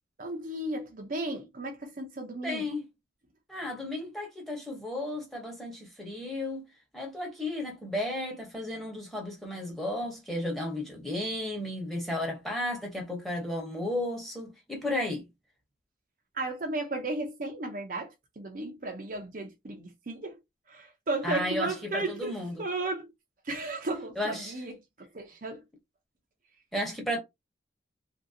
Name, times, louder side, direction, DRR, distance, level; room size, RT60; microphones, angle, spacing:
voice 1, 0.2-2.7 16.3-20.4 20.7-23.1 23.4-25.6, right 2 dB, 45° right, 0.7 m, -35 dB
voice 2, 2.4-2.8 3.5-6.6 6.9-15.2 21.2-22.5 24.2-24.5 26.7-27.2, left 1 dB, ahead, 1.1 m, -33 dB
2.9 x 2.6 x 2.8 m
head